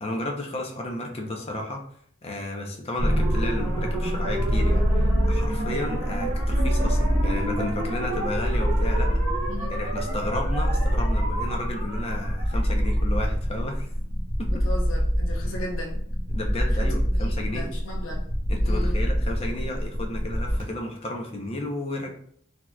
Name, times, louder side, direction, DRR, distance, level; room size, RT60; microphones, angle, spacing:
voice 1, 0.0-1.8 2.2-9.1 9.7-13.9 14.4-14.6 15.5-15.6 16.3-17.7 18.5-22.1, left 1 dB, 30° left, 1 dB, 0.6 m, -32 dB
sound 1, 3.0-20.6, equal, 40° right, 1.2 m, -25 dB
voice 2, 9.5-9.8 14.5-16.0 16.7-18.2 18.6-19.1, left 1 dB, 75° left, 0 dB, 0.8 m, -37 dB
4.3 x 2.8 x 2.2 m, 0.65 s
head